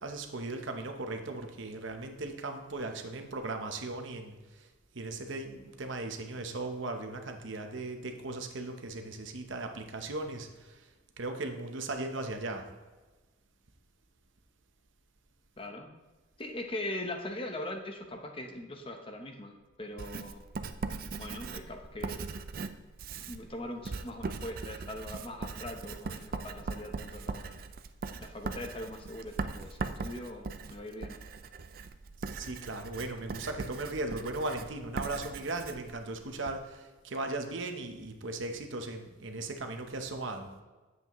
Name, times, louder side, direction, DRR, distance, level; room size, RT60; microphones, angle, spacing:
voice 1, 0.0-4.7 4.9-10.9 11.2-12.7 32.3-40.6, right 2 dB, 70° right, 5 dB, 0.9 m, -37 dB
voice 2, 15.6-15.9 16.4-20.5 21.2-22.3 23.2-27.6 28.2-31.2, left 1 dB, 25° left, 4 dB, 0.8 m, -41 dB
Writing, 20.0-36.6, right 4 dB, 45° right, 0.4 m, -40 dB
9.5 x 7.8 x 3.0 m, 1.2 s
head